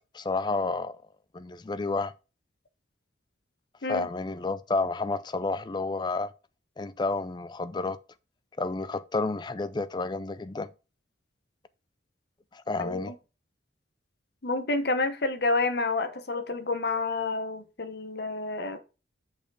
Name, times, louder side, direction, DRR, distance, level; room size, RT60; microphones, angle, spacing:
voice 1, 0.1-1.0 1.3-2.1 3.9-6.3 6.8-8.0 8.6-10.7 12.5-13.1, left 3 dB, 25° left, 0.4 m, -30 dB
voice 2, 12.8-13.1 14.4-18.8, left 3 dB, 55° left, 1.0 m, -29 dB
6.5 x 5.5 x 4.8 m
head